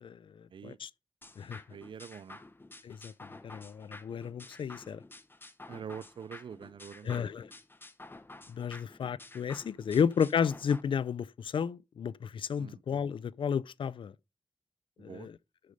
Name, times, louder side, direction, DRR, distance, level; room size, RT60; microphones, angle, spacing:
voice 1, 0.0-0.9 1.4-1.6 2.8-5.0 7.0-7.5 8.5-14.1 15.0-15.4, left 7 dB, 85° left, 0.3 m, -33 dB
sound 1, 1.2-10.8, left 2 dB, 25° left, 0.8 m, -51 dB
voice 2, 1.7-2.4 5.7-7.3 9.9-10.0 12.6-12.8 15.0-15.3, right 7 dB, 75° right, 0.4 m, -45 dB
6.7 x 6.5 x 5.2 m
wide cardioid pair, 85°, 9 cm